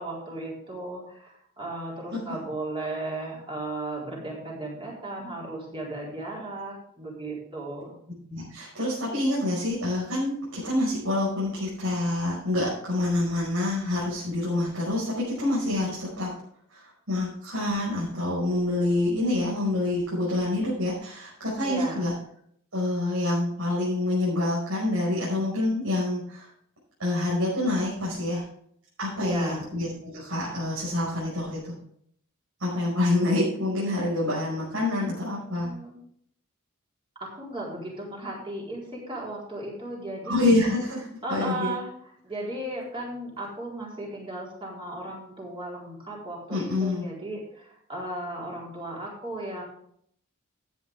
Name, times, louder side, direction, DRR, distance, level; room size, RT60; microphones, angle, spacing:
voice 1, 0.0-7.9 21.6-22.1 29.2-29.6 35.2-35.9 37.2-40.5 41.2-41.9 42.2-49.6, right 1 dB, 25° right, -3 dB, 4.3 m, -36 dB
voice 2, 8.3-16.3 16.7-22.1 22.7-26.5 27.0-28.4 29.0-31.7 32.6-35.7 40.3-41.7 46.5-47.0, left 2 dB, 80° right, -7 dB, 5.8 m, -27 dB
13.5 x 9.5 x 3.6 m, 0.66 s
head